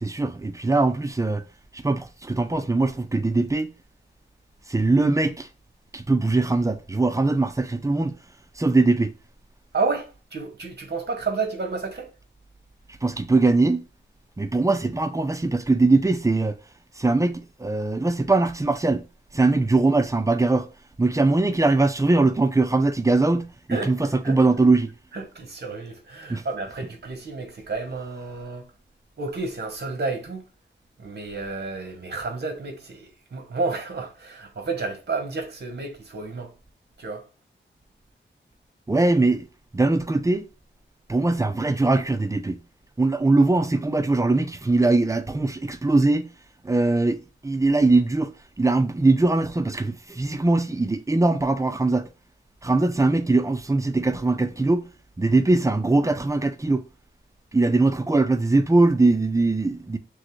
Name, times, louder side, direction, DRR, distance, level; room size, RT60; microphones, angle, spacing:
voice 1, 0.0-1.4 1.7-3.7 4.7-5.5 5.9-8.2 8.6-9.1 13.0-13.8 14.4-16.6 17.0-19.0 19.3-20.7 21.0-24.9 26.3-26.4 38.9-39.5 39.7-40.5 41.1-42.6 43.0-46.3 46.6-52.1 52.6-54.9 55.2-56.8 57.5-60.0, right 2 dB, 15° right, 0.4 m, -21 dB
voice 2, 9.7-12.1 23.7-23.9 24.2-24.4 25.1-28.7 29.2-30.4 31.0-36.5 37.0-37.2, right 3 dB, 55° right, 1.1 m, -31 dB
6.2 x 2.1 x 3.1 m
wide cardioid pair, 120°, 20 cm